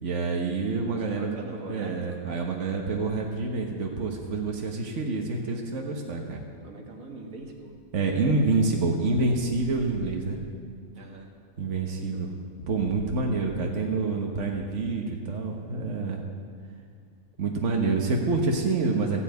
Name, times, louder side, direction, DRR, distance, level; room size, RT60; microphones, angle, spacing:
voice 1, 0.0-1.3 1.7-6.4 7.9-10.4 11.6-12.3 12.7-16.2 17.4-19.2, right 3 dB, 60° right, 1 dB, 1.6 m, -27 dB
voice 2, 1.0-2.2 6.6-7.7 11.0-11.3 11.9-12.3, right 2 dB, 85° right, 1 dB, 2.1 m, -42 dB
sound 1, 7.4-8.2 9.1-10.8 11.1-11.2 12.6-13.7, left 1 dB, 55° left, 1.4 m, -47 dB
14.0 x 8.2 x 9.4 m, 2.1 s
omnidirectional pair, 1.4 m